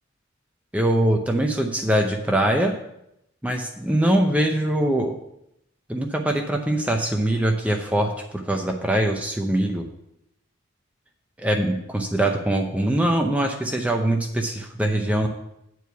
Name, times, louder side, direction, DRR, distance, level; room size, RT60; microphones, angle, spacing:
voice 1, 0.7-2.7 3.4-5.1 5.9-9.9 11.4-15.3, right 1 dB, 5° right, 2 dB, 0.6 m, -22 dB
8.6 x 4.7 x 6.8 m, 0.81 s
head